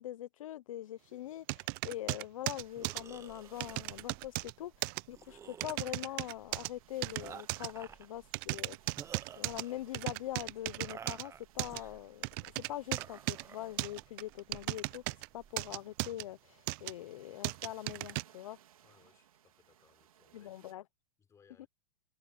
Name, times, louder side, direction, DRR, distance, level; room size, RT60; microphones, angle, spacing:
voice 1, 0.0-8.8 9.4-12.3 12.7-15.0 15.3-18.6 20.3-20.8, left 13 dB, 70° left, 0.9 m, -43 dB
sound 1, 1.5-3.0 3.6-4.5 4.8-5.0 5.6-6.7 7.0-7.7 8.3-9.6 9.9-11.2 11.6-11.8 12.2-13.4 13.8-15.3 15.6-16.2 16.7-16.9 17.4-18.2, right 27 dB, 40° right, 0.6 m, -36 dB
sound 2, 2.4-20.7, right 11 dB, 80° right, 3.9 m, -63 dB
sound 3, 2.7-15.7, right 7 dB, 15° right, 1.1 m, -53 dB
voice 2, 8.6-8.9 18.8-20.8 21.2-21.7, left 6 dB, 15° left, 4.9 m, -67 dB
hypercardioid pair, 140°, 18 cm